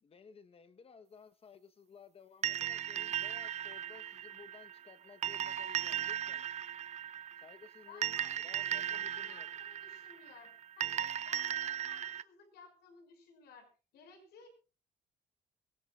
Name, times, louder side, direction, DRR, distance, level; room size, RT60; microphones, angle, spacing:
voice 1, 0.0-6.5 7.4-9.5, left 6 dB, 35° left, 1.2 m, -56 dB
sound 1, 2.4-12.2, right 10 dB, 40° right, 0.7 m, -37 dB
voice 2, 7.9-10.5 10.8-13.7 13.9-14.5, left 6 dB, 75° left, 6.1 m, -56 dB
22.0 x 18.0 x 2.5 m
cardioid pair, 110°, 17 cm